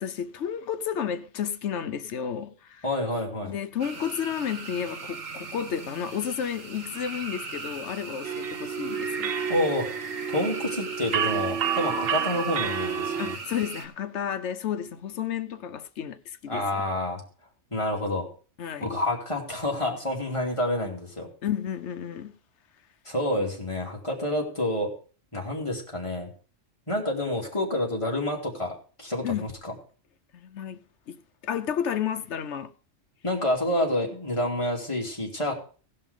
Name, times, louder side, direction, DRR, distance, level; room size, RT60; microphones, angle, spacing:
voice 1, 0.0-2.8 3.4-9.3 13.2-16.7 18.6-18.9 21.4-22.3 29.2-29.5 30.3-30.8 31.1-32.7, left 8 dB, 65° left, 1.0 m, -32 dB
voice 2, 2.8-3.5 9.5-10.0 10.3-13.4 16.5-17.2 17.7-18.3 18.8-21.3 23.0-24.9 25.3-26.3 26.9-29.7 33.2-35.5, left 1 dB, 25° left, 2.7 m, -28 dB
sound 1, 3.8-13.9, right 4 dB, 85° right, 1.6 m, -39 dB
sound 2, 8.2-13.4, right 7 dB, 55° right, 0.8 m, -30 dB
17.0 x 5.7 x 5.0 m
omnidirectional pair, 1.3 m